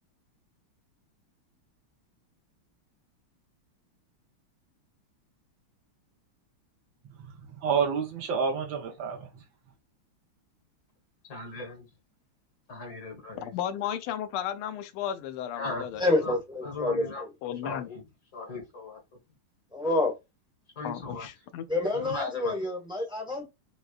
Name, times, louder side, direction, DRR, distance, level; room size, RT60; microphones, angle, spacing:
voice 1, 7.0-9.3, right 6 dB, 70° right, 1.5 m, -29 dB
voice 2, 11.3-11.9 12.7-13.5 15.6-15.9 16.2-16.4 16.6-17.2 17.6-18.0 18.3-19.0 20.8-21.3 21.9-22.5, left 3 dB, 50° left, 1.8 m, -37 dB
voice 3, 13.4-16.0 17.4-17.9 20.8-21.6, left 10 dB, 85° left, 1.5 m, -34 dB
voice 4, 16.0-17.3 19.7-20.1 21.7-23.5, left 2 dB, 5° right, 1.1 m, -28 dB
6.4 x 2.3 x 2.4 m
omnidirectional pair, 2.3 m